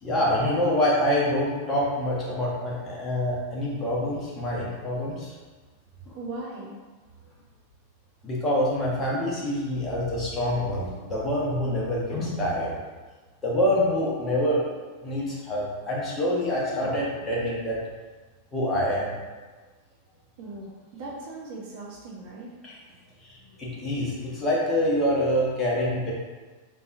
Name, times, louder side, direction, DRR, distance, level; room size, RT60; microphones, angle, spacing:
voice 1, 0.0-5.3 6.1-6.2 8.2-12.8 13.4-14.6 15.0-17.8 18.5-19.2 22.6-22.8 23.2-26.1, left 1 dB, 15° left, -6 dB, 1.1 m, -26 dB
voice 2, 6.2-6.7 20.4-22.5, right 2 dB, 50° right, -3 dB, 0.7 m, -38 dB
3.7 x 3.3 x 2.5 m, 1.3 s
figure-of-eight pair, 90°, 0 cm